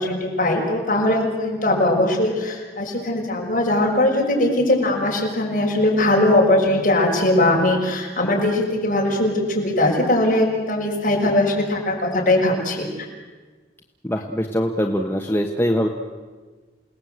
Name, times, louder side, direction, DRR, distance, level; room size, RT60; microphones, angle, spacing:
voice 1, 0.0-12.9, left 1 dB, 45° left, -2 dB, 6.2 m, -20 dB
voice 2, 14.0-15.9, equal, 10° left, 1 dB, 1.3 m, -22 dB
29.0 x 18.5 x 8.1 m, 1.4 s
head